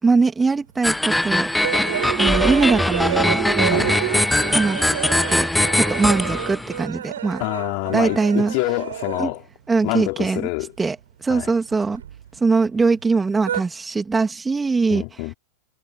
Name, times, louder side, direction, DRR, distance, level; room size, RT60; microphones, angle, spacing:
voice 1, 0.0-1.5 2.1-3.9 4.5-4.8 5.3-5.5 5.7-7.4 7.9-8.5 9.2-9.3 9.7-10.4 10.8-11.0 11.2-12.0 12.4-15.0, right 4 dB, 10° right, 2.9 m, -21 dB
sound 1, 0.8-6.8, left 1 dB, 5° left, 0.5 m, -21 dB
sound 2, 0.8-9.5 9.8-11.0 11.3-12.7 13.0-13.6, right 10 dB, 65° right, 4.6 m, -31 dB
Alarm, 1.9-5.2 5.6-5.9, right 30 dB, 45° right, 1.6 m, -29 dB
voice 2, 3.7-4.0 7.4-9.4 9.8-10.7 11.3-11.5 14.9-15.3, left 38 dB, 45° left, 4.0 m, -26 dB
figure-of-eight pair, 90°, 0 cm